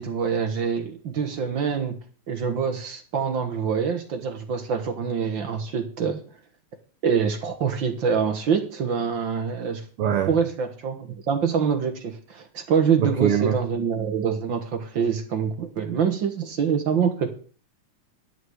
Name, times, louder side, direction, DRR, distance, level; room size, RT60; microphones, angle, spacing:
voice 1, 0.0-1.9 2.3-6.2 7.0-9.8 10.3-17.3, right 6 dB, 50° right, 6 dB, 1.7 m, -25 dB
voice 2, 10.0-10.3 13.0-13.6, right 9 dB, 70° right, 8 dB, 1.4 m, -22 dB
11.5 x 6.1 x 7.8 m, 0.41 s
omnidirectional pair, 3.3 m